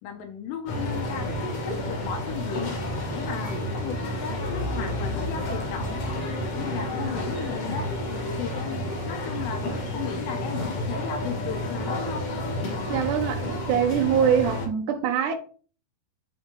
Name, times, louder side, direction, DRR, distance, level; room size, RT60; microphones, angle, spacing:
voice 1, 0.0-2.7 3.1-6.0 6.5-7.9 8.2-9.7 9.9-12.3, left 7 dB, 85° left, 3.0 m, -35 dB
sound 1, 0.7-14.7, left 1 dB, 55° left, 1.7 m, -30 dB
voice 2, 12.9-15.3, right 8 dB, 80° right, 1.8 m, -23 dB
9.1 x 3.6 x 3.7 m
omnidirectional pair, 4.8 m